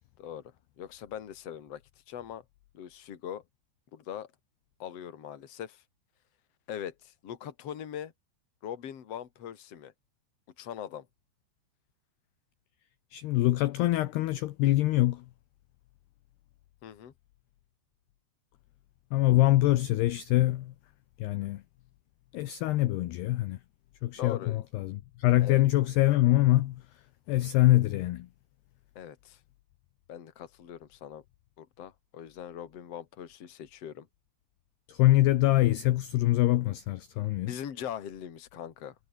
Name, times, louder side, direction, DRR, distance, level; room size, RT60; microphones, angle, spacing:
voice 1, 0.8-1.8 2.1-2.4 2.7-3.4 3.9-4.3 4.8-5.8 6.7-8.1 8.6-9.9 10.6-11.1 16.8-17.1 24.2-24.6 25.4-25.6 28.9-29.4 30.1-31.2 31.6-34.1 37.4-38.9, left 9 dB, 40° left, 2.6 m, -41 dB
voice 2, 13.1-15.2 19.1-20.7 21.2-21.6 22.3-23.6 24.0-26.8 27.3-28.3 34.9-37.6, left 16 dB, 75° left, 2.6 m, -24 dB
omnidirectional pair, 5.7 m